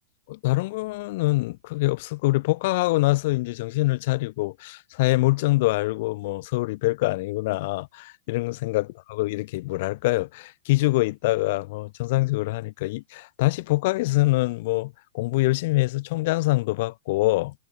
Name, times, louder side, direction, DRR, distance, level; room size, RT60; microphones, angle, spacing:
voice 1, 0.3-17.5, left 20 dB, 50° left, 1.3 m, -24 dB
hypercardioid pair, 110°, 0 cm